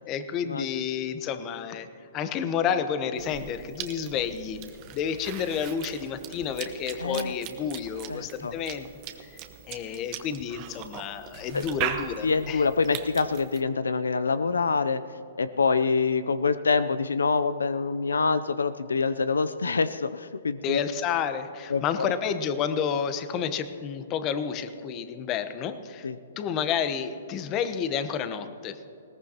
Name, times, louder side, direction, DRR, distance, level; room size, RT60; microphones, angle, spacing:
voice 1, 0.1-1.9 2.1-4.6 4.9-8.9 9.7-12.6 20.6-26.1 26.4-28.8, left 7 dB, 30° left, 11 dB, 1.0 m, -30 dB
Cough / Chewing mastication, 3.2-13.6, right 10 dB, 35° right, 1.2 m, -39 dB
voice 2, 7.0-7.4 8.1-8.5 11.5-11.7 12.2-15.0 15.4-20.8 21.7-22.1 26.0-26.2, left 4 dB, 90° left, 13 dB, 0.5 m, -26 dB
20.5 x 18.0 x 2.9 m, 2.8 s
hypercardioid pair, 130°, 0 cm